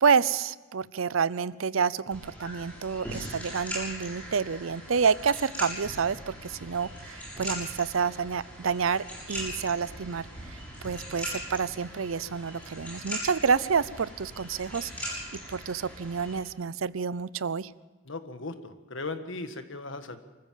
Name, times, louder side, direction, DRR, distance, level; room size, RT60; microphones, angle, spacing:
voice 1, 0.0-15.2 15.5-17.7, right 6 dB, 90° right, 19 dB, 0.6 m, -28 dB
sound 1, 2.1-16.4, equal, 5° left, 7.1 m, -40 dB
voice 2, 18.0-20.2, left 3 dB, 70° left, 8 dB, 1.6 m, -37 dB
25.5 x 14.5 x 7.5 m, 1.2 s
head